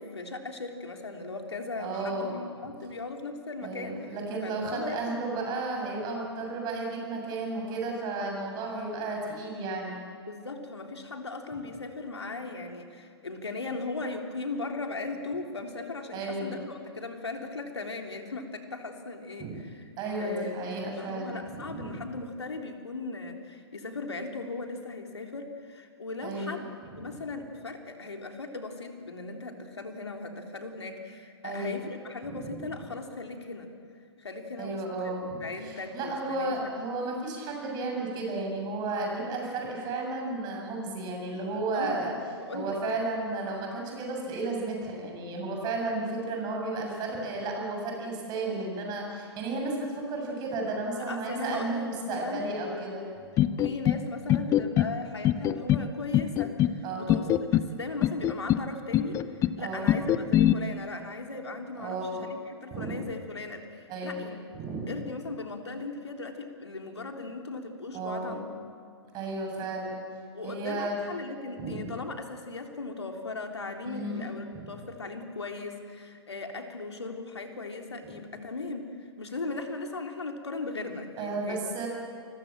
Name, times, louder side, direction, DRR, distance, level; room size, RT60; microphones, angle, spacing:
voice 1, 0.0-4.1 4.4-5.2 10.3-19.8 20.2-20.6 21.0-33.7 34.2-36.7 41.7-42.0 42.4-42.8 49.1-49.2 51.1-52.4 52.7-52.8 53.6-64.4 64.9-68.4 70.3-81.6, left 3 dB, 75° left, 3 dB, 3.6 m, -38 dB
voice 2, 1.8-2.3 3.6-10.0 16.1-16.5 19.4-19.6 20.0-22.0 26.2-26.6 31.4-31.9 32.2-32.5 34.6-42.1 42.5-53.0 56.8-57.2 59.6-59.9 61.7-62.2 62.7-62.9 63.9-64.2 64.5-65.0 67.9-68.4 69.1-70.0 70.4-71.0 71.6-71.9 73.8-74.3 74.5-74.6 81.2-81.9, right 2 dB, 30° right, 1 dB, 7.8 m, -33 dB
sound 1, 53.4-54.0 54.3-54.9 55.2-55.9 56.1-56.8 57.1-57.7 58.0-58.6 58.9-59.6 59.9-60.5, left 12 dB, 20° left, 0.8 m, -23 dB
29.0 x 22.0 x 7.6 m, 2.3 s
figure-of-eight pair, 115°, 14 cm